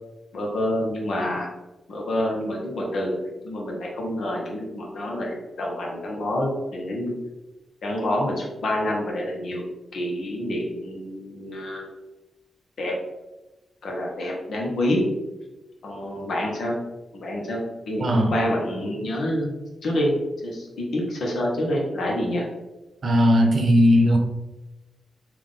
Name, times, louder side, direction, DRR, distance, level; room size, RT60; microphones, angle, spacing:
voice 1, 0.3-1.5 1.9-7.1 7.8-9.6 9.9-11.9 12.8-12.9 13.8-15.0 15.8-16.8 17.1-17.6 17.9-19.5 19.8-20.1 20.4-22.5, left 1 dB, 75° left, -2 dB, 1.0 m, -27 dB
voice 2, 18.0-18.3 23.0-24.2, equal, 60° right, 3 dB, 0.7 m, -17 dB
3.4 x 2.5 x 3.7 m, 1.0 s
supercardioid pair, 45°, 0 cm